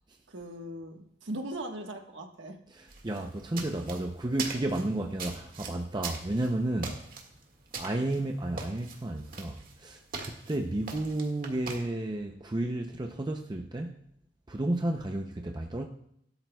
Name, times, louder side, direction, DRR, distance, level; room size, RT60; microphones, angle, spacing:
voice 1, 0.3-2.6, right 1 dB, 85° right, 1.4 m, -39 dB
voice 2, 2.7-7.1 7.7-14.0 14.5-15.8, right 1 dB, 25° right, 0.6 m, -32 dB
sound 1, 2.9-11.8, right 4 dB, 50° right, 1.9 m, -42 dB
18.0 x 12.0 x 2.3 m
head